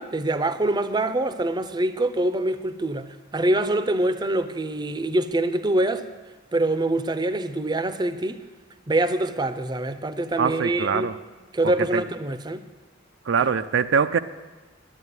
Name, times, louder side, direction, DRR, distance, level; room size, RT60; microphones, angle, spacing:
voice 1, 0.0-6.1 6.5-8.4 8.9-11.1 11.5-12.6 13.4-13.5, right 1 dB, 20° right, 12 dB, 0.6 m, -25 dB
voice 2, 10.4-11.1 11.9-12.0 13.3-14.2, right 6 dB, 80° right, 11 dB, 0.4 m, -22 dB
11.0 x 8.9 x 9.5 m, 1.2 s
head